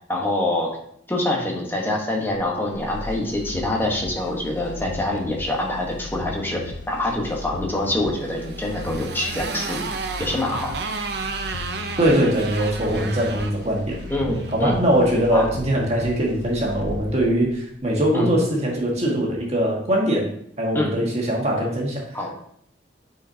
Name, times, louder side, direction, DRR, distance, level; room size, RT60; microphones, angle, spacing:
voice 1, 0.1-0.7 1.1-9.9 10.2-10.7 12.9-13.1 14.1-14.7 15.3-15.5 18.1-18.3 20.7-20.9 22.1-22.3, left 1 dB, 10° left, -1 dB, 1.1 m, -25 dB
sound 1, 2.5-18.4 18.7-18.8, left 3 dB, 80° left, 0.6 m, -37 dB
Motorcycle, 8.2-14.6, right 4 dB, 60° right, 0.6 m, -33 dB
voice 2, 12.0-14.0 14.5-20.3 20.6-22.0, right 1 dB, 35° right, -3 dB, 1.6 m, -21 dB
8.5 x 4.7 x 2.8 m, 0.67 s
head